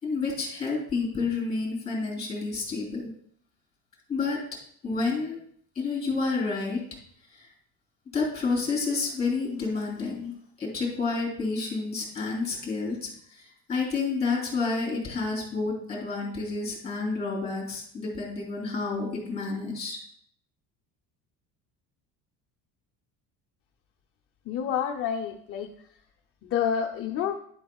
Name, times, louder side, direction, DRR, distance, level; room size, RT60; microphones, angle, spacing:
voice 1, 0.0-3.1 4.1-4.4 4.8-5.4 5.7-6.8 7.3-7.5 8.1-10.3 10.6-20.0, left 4 dB, 15° left, -2 dB, 3.3 m, -29 dB
voice 2, 24.5-25.7 26.4-27.4, left 8 dB, 35° left, 3 dB, 0.6 m, -28 dB
11.5 x 8.0 x 2.3 m, 0.64 s
cardioid pair, 175°, 39 cm